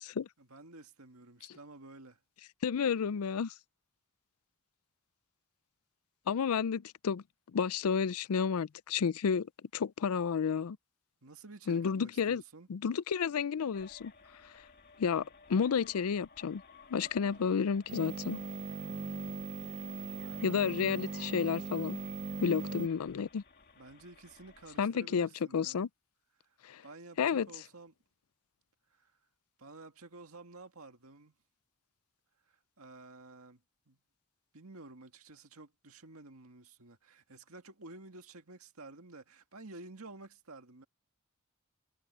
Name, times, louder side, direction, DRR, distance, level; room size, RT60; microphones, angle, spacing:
voice 1, 0.4-2.2 11.2-12.7 17.2-17.5 20.1-20.8 23.8-25.8 26.8-27.9 28.9-29.1 29.6-31.3 32.5-33.6 33.9-34.0 34.5-40.9, right 2 dB, 75° right, 2.0 m, -52 dB
voice 2, 2.6-3.5 6.3-7.2 7.5-9.5 9.7-10.8 11.7-12.4 12.7-14.1 15.0-16.6 16.9-18.4 20.4-22.0 22.4-23.4 24.8-25.9 26.6-26.8 27.2-27.5, left 6 dB, 85° left, 0.4 m, -31 dB
sound 1, 13.7-24.8, left 4 dB, 50° left, 2.5 m, -58 dB
sound 2, 17.9-22.9, right 3 dB, 35° right, 0.5 m, -39 dB
head